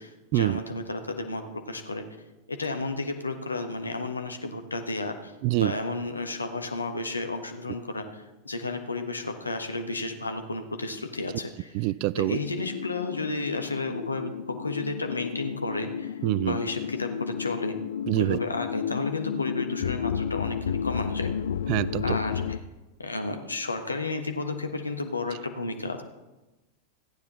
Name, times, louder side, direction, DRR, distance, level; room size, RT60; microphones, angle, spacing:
voice 1, 0.0-2.0 2.5-5.3 5.6-11.8 12.2-16.1 16.4-17.8 18.2-21.3 22.0-22.6 23.0-26.0, left 3 dB, 80° left, 5 dB, 1.2 m, -32 dB
voice 2, 11.7-12.4 16.2-16.6 18.1-18.4 21.7-22.2, right 20 dB, 45° right, 21 dB, 0.3 m, -25 dB
sound 1, 12.1-22.6, left 7 dB, 60° left, 0.4 m, -32 dB
14.5 x 9.5 x 4.1 m, 1.1 s
figure-of-eight pair, 90°, 0 cm